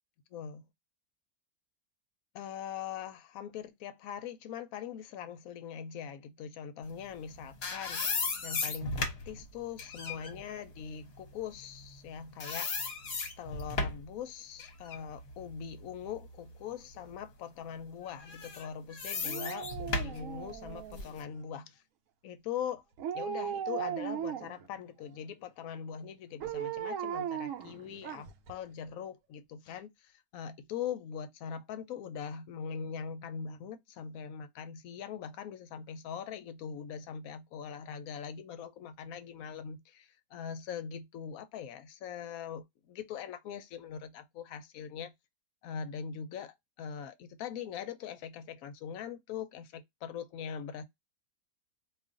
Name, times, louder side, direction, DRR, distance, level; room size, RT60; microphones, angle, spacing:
voice 1, 0.3-0.6 2.3-12.7 13.4-21.8 22.2-22.8 23.1-45.1 45.6-50.8, left 8 dB, 70° left, 0.9 m, -42 dB
sound 1, 7.2-12.1 12.4-14.1 14.6-16.6 17.0-17.2 18.2-21.2, left 3 dB, 50° left, 0.9 m, -36 dB
Dog, 19.2-21.3 23.0-24.7 26.4-28.5 28.9-29.0, right 9 dB, 65° right, 0.9 m, -37 dB
2.5 x 2.4 x 3.6 m
omnidirectional pair, 1.7 m